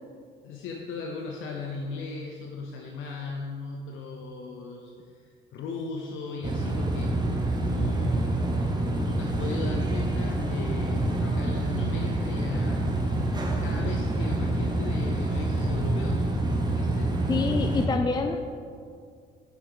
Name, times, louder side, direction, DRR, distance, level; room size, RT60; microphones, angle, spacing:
voice 1, 0.4-7.2 7.6-8.5 8.8-13.0 13.6-17.2, left 4 dB, 80° left, 0 dB, 0.7 m, -37 dB
sound 1, 6.4-17.9, right 2 dB, 20° right, 1.1 m, -27 dB
voice 2, 17.3-18.4, left 4 dB, 20° left, 5 dB, 0.4 m, -26 dB
7.0 x 4.6 x 5.6 m, 2.2 s
cardioid pair, 90°, 20 cm